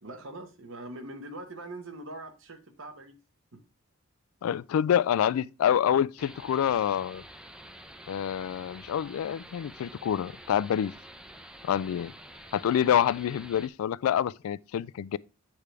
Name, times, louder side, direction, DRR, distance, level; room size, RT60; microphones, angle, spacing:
voice 1, 0.0-3.2 3.5-3.6, right 2 dB, 65° right, 1.2 m, -42 dB
voice 2, 4.4-7.2 8.1-10.9 11.6-12.1 12.5-15.2, left 9 dB, 90° left, 0.3 m, -27 dB
sound 1, 6.2-13.7, right 1 dB, 5° right, 0.5 m, -48 dB
8.6 x 3.4 x 4.6 m
head